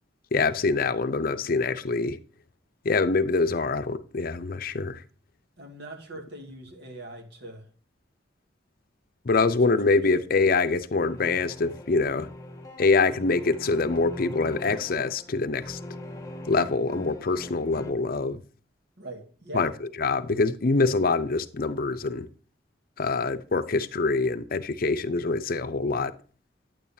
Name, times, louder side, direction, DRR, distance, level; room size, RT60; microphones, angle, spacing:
voice 1, 0.3-2.2 2.8-5.0 9.2-12.3 12.8-15.8 16.5-18.4 19.5-19.7 20.0-22.3 23.0-26.1, left 3 dB, 55° left, 0.7 m, -25 dB
voice 2, 5.6-7.7 9.8-9.9 19.0-19.7, right 1 dB, 65° right, 2.0 m, -41 dB
sound 1, 11.0-17.9, left 1 dB, 20° left, 1.3 m, -41 dB
9.3 x 8.9 x 2.7 m
head